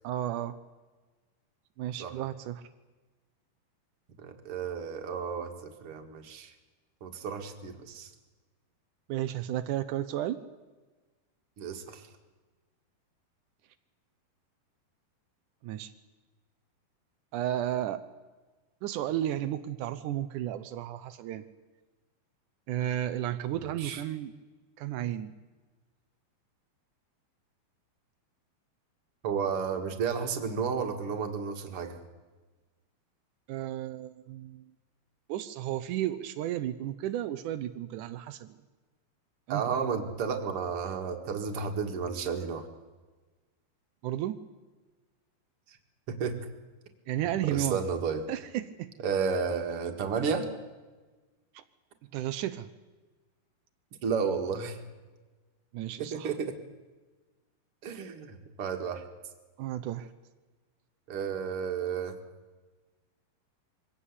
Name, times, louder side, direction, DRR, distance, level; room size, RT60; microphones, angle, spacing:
voice 1, 0.0-0.6 1.8-2.6 9.1-10.4 15.6-15.9 17.3-18.0 18.8-21.4 22.7-24.3 24.8-25.3 33.5-34.6 35.3-38.6 39.5-39.7 44.0-44.4 47.1-47.8 48.3-48.9 51.5-51.6 52.1-52.7 55.7-56.4 59.6-60.1, right 12 dB, 90° right, 10 dB, 1.7 m, -33 dB
voice 2, 4.2-6.5 7.0-8.1 11.6-12.1 23.6-24.0 29.2-32.0 39.5-42.7 46.2-46.4 47.4-48.2 49.0-50.5 54.0-54.8 56.0-56.5 57.8-59.0 61.1-62.2, right 6 dB, 45° right, 5 dB, 2.2 m, -32 dB
23.0 x 17.0 x 8.4 m, 1.3 s
omnidirectional pair, 4.6 m